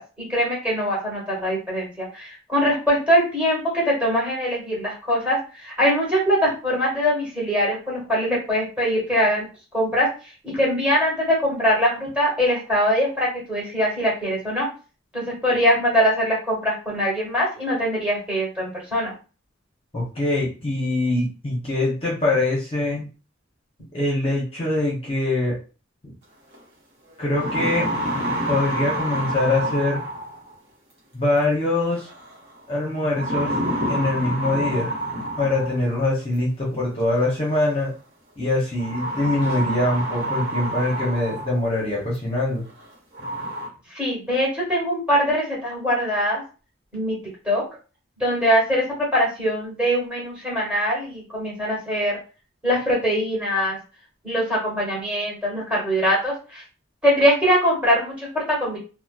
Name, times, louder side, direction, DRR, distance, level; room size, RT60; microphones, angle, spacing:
voice 1, 0.0-9.5 9.7-10.1 10.4-14.7 15.1-19.1 43.9-46.4 46.9-47.2 47.4-47.6 48.2-52.1 52.6-53.8 54.2-56.6 57.0-58.8, equal, 5° right, -5 dB, 1.2 m, -22 dB
voice 2, 19.9-23.0 23.9-25.6 27.2-27.9 28.5-30.0 31.1-32.1 32.7-33.5 33.9-35.0 35.4-37.9 38.4-42.6, left 2 dB, 30° left, -4 dB, 0.7 m, -23 dB
sound 1, 26.5-26.6 27.1-30.5 31.9-32.3 33.1-35.9 37.2-37.3 38.8-41.7 42.1-42.2 42.8-42.9 43.1-43.7, right 1 dB, 60° right, 1.0 m, -28 dB
2.7 x 2.0 x 2.3 m, 0.35 s
head